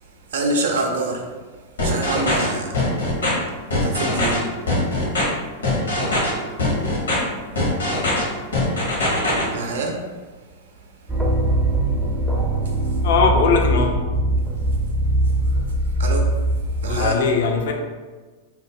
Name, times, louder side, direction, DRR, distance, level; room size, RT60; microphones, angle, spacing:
voice 1, 0.3-1.3 1.8-3.4 3.8-4.4 5.1-5.2 5.9-6.2 9.5-10.1 12.6-12.7 15.4-15.5 16.0-16.3 16.8-17.2, right 2 dB, 65° right, 2 dB, 0.5 m, -26 dB
sound 1, 1.8-2.5 2.7-3.3 3.7-4.4 4.7-5.2 5.6-6.3 6.6-7.2 7.6-8.2 8.5-9.4, left 2 dB, 80° left, 0.9 m, -21 dB
sound 2, 11.1-17.1, right 1 dB, 5° right, 0.5 m, -21 dB
voice 2, 13.0-14.0 16.9-17.7, left 5 dB, 60° left, 3 dB, 0.4 m, -19 dB
2.3 x 2.1 x 3.6 m, 1.3 s
figure-of-eight pair, 95°, 0 cm